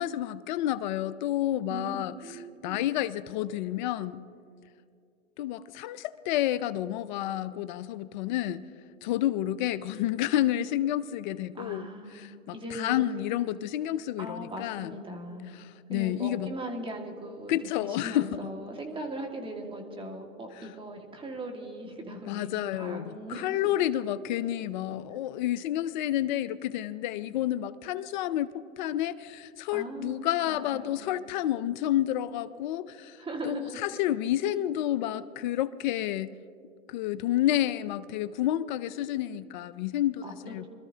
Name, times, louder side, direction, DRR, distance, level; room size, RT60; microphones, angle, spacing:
voice 1, 0.0-2.1 2.6-4.2 5.4-8.7 9.0-11.9 12.1-15.0 15.6-16.5 17.5-18.4 22.3-33.2 33.4-36.3 36.9-40.7, left 13 dB, 40° left, 15 dB, 0.4 m, -30 dB
voice 2, 2.2-2.9 11.6-13.0 14.2-15.5 15.9-17.6 17.8-22.5 22.7-23.6 25.1-25.2 29.7-31.1 33.2-33.8 40.2-40.7, right 1 dB, 15° right, 2 dB, 1.8 m, -39 dB
25.0 x 13.5 x 2.8 m, 2.4 s
hypercardioid pair, 120°, 38 cm